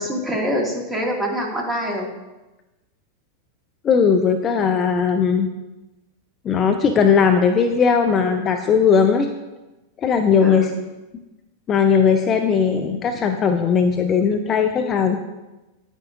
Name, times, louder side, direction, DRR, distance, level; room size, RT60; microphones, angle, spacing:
voice 1, 0.0-2.1 10.4-10.7, equal, 10° right, -1 dB, 1.9 m, -25 dB
voice 2, 3.8-5.5 6.4-9.3 10.0-10.7 11.7-15.2, left 6 dB, 25° left, 6 dB, 0.5 m, -18 dB
9.7 x 9.0 x 2.5 m, 1.1 s
figure-of-eight pair, 90°, 0 cm